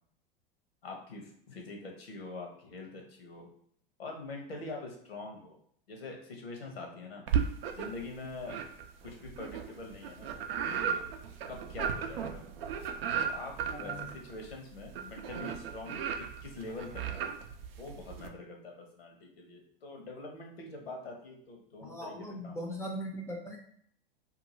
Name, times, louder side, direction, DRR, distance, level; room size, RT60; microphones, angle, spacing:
voice 1, 0.8-3.5 4.0-5.6 5.9-7.2 7.7-8.6 9.0-10.3 10.6-11.0 11.5-12.4 13.2-17.2 17.8-22.8, left 2 dB, 90° left, 2 dB, 0.9 m, -44 dB
sound 1, 7.3-8.1 8.5-18.3, right 7 dB, 75° right, 0.5 m, -35 dB
voice 2, 13.7-14.1 21.8-23.6, equal, 10° left, 0 dB, 0.4 m, -39 dB
2.5 x 2.4 x 3.0 m, 0.66 s
hypercardioid pair, 100°, 29 cm